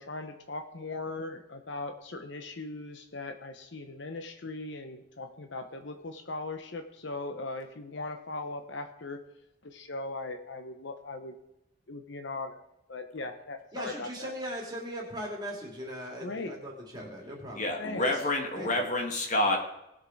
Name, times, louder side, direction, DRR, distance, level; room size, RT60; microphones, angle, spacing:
voice 1, 0.0-9.2 9.6-11.3 11.9-12.6 12.9-14.3 16.2-16.5 17.8-18.1 18.5-18.7, left 2 dB, 60° left, 6 dB, 0.9 m, -39 dB
voice 2, 13.7-17.7 18.0-18.1 18.5-18.9, equal, 20° right, -2 dB, 3.1 m, -39 dB
voice 3, 17.6-19.7, left 1 dB, 35° left, 3 dB, 1.6 m, -28 dB
19.0 x 6.6 x 4.6 m, 0.87 s
head